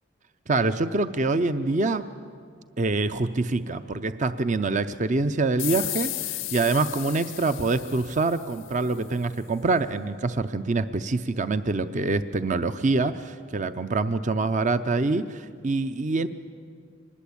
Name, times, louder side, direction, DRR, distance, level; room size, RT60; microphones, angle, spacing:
voice 1, 0.5-2.0 2.8-16.3, right 3 dB, 40° right, 11 dB, 0.6 m, -25 dB
sound 1, 5.6-8.9, left 17 dB, 70° left, 0.6 m, -34 dB
25.0 x 20.0 x 8.5 m, 2.1 s
head